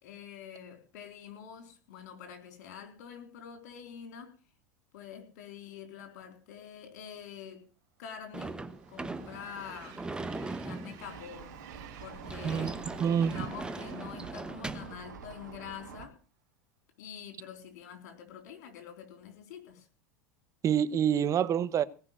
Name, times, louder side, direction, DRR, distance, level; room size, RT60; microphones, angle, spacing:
voice 1, 0.0-4.3 4.9-7.6 8.0-8.6 8.9-10.0 10.6-11.6 12.0-12.7 13.2-16.2 17.0-19.9, left 8 dB, 70° left, 4.0 m, -46 dB
Train, 8.0-15.5, right 11 dB, 60° right, 2.8 m, -54 dB
Sliding door / Slam, 8.3-15.0, right 2 dB, 10° right, 1.0 m, -40 dB
sound 1, 11.0-16.1, right 7 dB, 80° right, 2.0 m, -47 dB
voice 2, 13.0-13.3 20.6-21.8, right 8 dB, 35° right, 1.1 m, -26 dB
18.0 x 6.0 x 9.1 m
hypercardioid pair, 90°, 9 cm